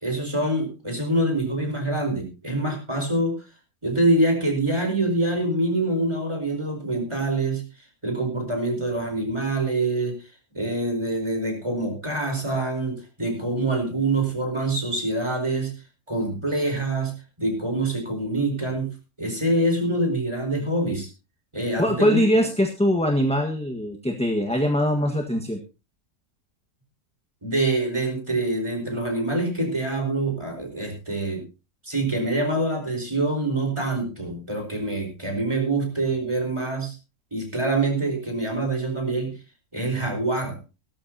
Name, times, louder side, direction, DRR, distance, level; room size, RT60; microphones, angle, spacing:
voice 1, 0.0-3.3 3.8-7.6 8.0-10.2 10.5-15.7 16.1-21.1 21.5-22.2 27.4-31.4 31.8-36.9 37.3-39.4 39.7-40.6, right 2 dB, 20° right, 3 dB, 4.7 m, -25 dB
voice 2, 21.8-25.6, equal, 5° left, 3 dB, 1.5 m, -22 dB
17.5 x 13.5 x 2.8 m, 0.30 s
omnidirectional pair, 1.6 m